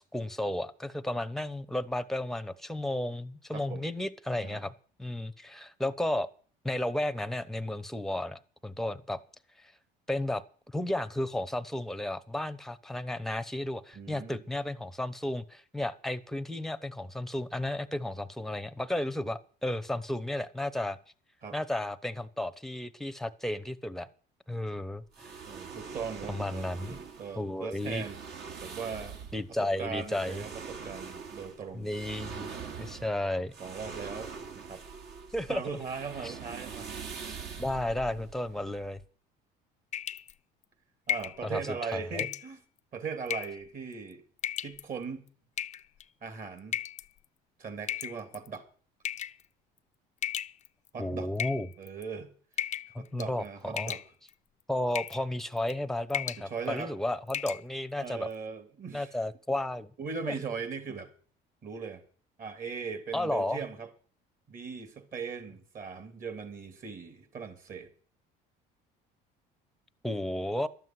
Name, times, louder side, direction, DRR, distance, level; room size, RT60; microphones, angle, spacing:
voice 1, 0.0-4.7 5.0-6.3 6.6-9.2 10.1-10.4 10.7-21.0 21.5-24.1 24.5-25.4 26.3-27.0 27.4-28.0 29.3-30.4 31.7-32.5 32.8-33.5 35.3-35.6 36.2-36.4 37.6-39.0 41.4-42.3 51.0-51.7 52.9-53.9 54.7-58.3 58.9-59.9 60.3-60.4 63.1-63.6 70.0-70.7, left 1 dB, ahead, 15 dB, 0.9 m, -33 dB
voice 2, 3.5-3.9 4.4-4.6 13.9-14.4 21.4-21.6 25.5-28.2 28.6-29.2 29.6-31.9 33.6-34.8 35.5-36.9 41.1-42.6 42.9-44.2 44.6-45.2 46.2-46.8 47.6-48.6 50.9-51.3 51.8-52.3 53.0-54.0 56.4-56.9 58.0-59.1 60.0-61.1 61.6-62.0 62.4-63.9 64.5-67.9, right 5 dB, 45° right, 9 dB, 3.0 m, -39 dB
sound 1, 25.1-39.0, right 6 dB, 60° right, 2.5 m, -44 dB
sound 2, 39.9-40.3 41.1-41.4 42.2-42.5 43.3-43.6 44.4-44.8 45.6-46.0 46.7-47.1 47.9-48.5 49.0-49.4 50.2-50.9 51.4-52.0 52.6-52.9 53.2-53.5 53.8-54.3 54.9-55.2 55.6-55.8 56.1-56.4 56.8-56.9 57.3-57.6, left 10 dB, 35° left, 0.5 m, -34 dB
12.0 x 7.7 x 9.5 m, 0.43 s
supercardioid pair, 105°, 20 cm